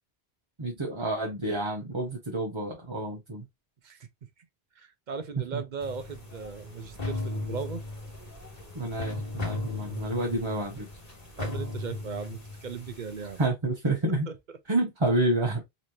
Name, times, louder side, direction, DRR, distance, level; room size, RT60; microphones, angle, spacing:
voice 1, 0.6-3.4 5.5-5.6 8.7-10.9 13.4-14.3 14.7-15.6, right 2 dB, 30° right, 0.9 m, -29 dB
voice 2, 4.8-7.8 10.0-10.1 11.4-13.4 14.3-14.4, right 5 dB, 55° right, 0.7 m, -37 dB
sound 1, 5.8-13.4, left 2 dB, 40° left, 1.6 m, -37 dB
3.9 x 3.2 x 2.6 m
omnidirectional pair, 1.0 m